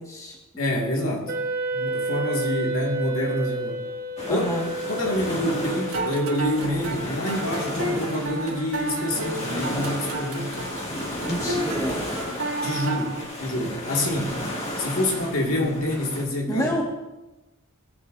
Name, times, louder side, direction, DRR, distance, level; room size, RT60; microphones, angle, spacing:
voice 1, 0.0-0.4 4.3-4.7 11.2-12.1 16.5-16.8, equal, 15° left, -2 dB, 1.7 m, -28 dB
voice 2, 0.6-1.3 1.7-3.9 4.3-4.5 4.9-10.6 12.6-13.1 13.4-14.4 14.8-16.7, left 1 dB, 65° left, -1 dB, 2.0 m, -27 dB
Wind instrument woodwind instrument, 1.3-6.5, right 2 dB, 45° right, 1.0 m, -30 dB
sound 1, 4.2-16.2, left 1 dB, 30° left, 2.1 m, -33 dB
sound 2, 5.6-13.2, right 2 dB, 70° right, 1.4 m, -32 dB
16.5 x 9.4 x 2.6 m, 1.0 s
head